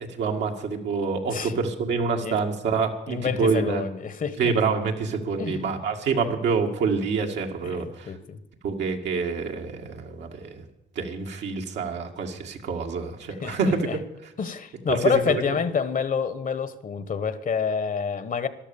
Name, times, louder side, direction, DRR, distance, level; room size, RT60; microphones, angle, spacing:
voice 1, 0.2-3.8 4.4-8.2 8.6-10.7 11.0-13.8 14.9-15.4, right 5 dB, 75° right, 2.0 m, -27 dB
voice 2, 3.1-4.5 5.4-5.6 7.6-8.4 13.4-14.0 14.4-18.5, left 6 dB, 50° left, 1.3 m, -28 dB
13.0 x 11.5 x 7.1 m
supercardioid pair, 60°, 18 cm